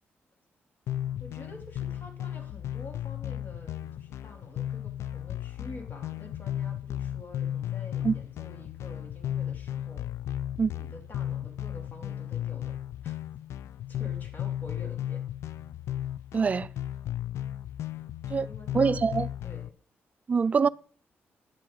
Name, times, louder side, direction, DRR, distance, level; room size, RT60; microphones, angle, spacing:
sound 1, 0.9-19.7, left 11 dB, 80° left, 0.4 m, -35 dB
voice 1, 1.2-10.1 10.7-13.1 13.9-15.2 18.4-19.1 19.4-19.7 20.5-20.7, left 1 dB, 40° left, 3.0 m, -48 dB
voice 2, 16.3-16.7 18.3-18.5 18.7-19.3 20.3-20.7, right 5 dB, 30° right, 0.4 m, -24 dB
10.0 x 7.7 x 5.2 m
cardioid pair, 110°, 5 cm